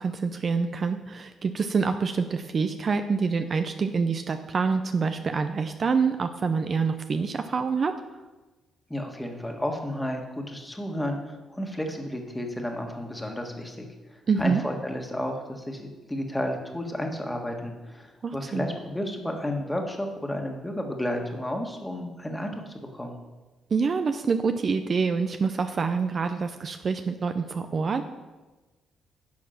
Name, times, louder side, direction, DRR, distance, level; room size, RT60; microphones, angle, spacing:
voice 1, 0.0-8.0 14.3-14.6 18.2-18.6 23.7-28.0, right 5 dB, 45° right, 8 dB, 0.6 m, -26 dB
voice 2, 8.9-23.1, left 1 dB, 10° left, 2 dB, 1.7 m, -32 dB
10.5 x 6.5 x 5.8 m, 1.2 s
cardioid pair, 90°, 0 cm